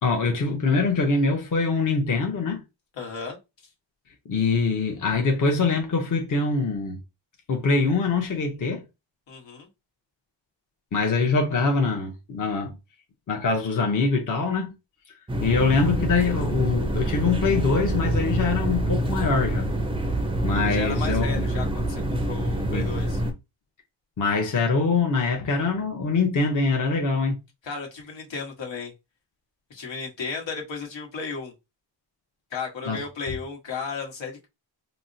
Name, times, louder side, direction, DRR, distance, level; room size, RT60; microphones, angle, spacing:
voice 1, 0.0-2.6 4.3-7.0 7.5-8.8 10.9-12.7 13.3-14.7 15.4-19.7 20.4-21.4 22.7-22.9 24.2-27.4 32.9-33.0, left 4 dB, 45° left, 0.7 m, -23 dB
voice 2, 3.0-3.4 9.3-9.7 20.6-23.2 27.6-28.9 29.7-31.5 32.5-34.5, left 5 dB, 80° left, 1.2 m, -34 dB
sound 1, 15.3-23.3, right 1 dB, 15° right, 0.3 m, -26 dB
4.2 x 2.0 x 2.6 m
wide cardioid pair, 175°, 44 cm